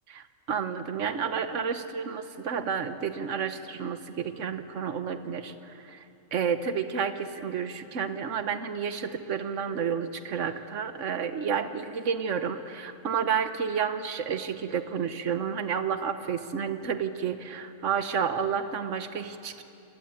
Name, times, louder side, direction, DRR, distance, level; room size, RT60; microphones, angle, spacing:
voice 1, 0.1-5.5 5.8-6.0 6.3-19.6, right 7 dB, 75° right, 9 dB, 1.4 m, -30 dB
28.0 x 22.5 x 9.0 m, 2.7 s
omnidirectional pair, 1.3 m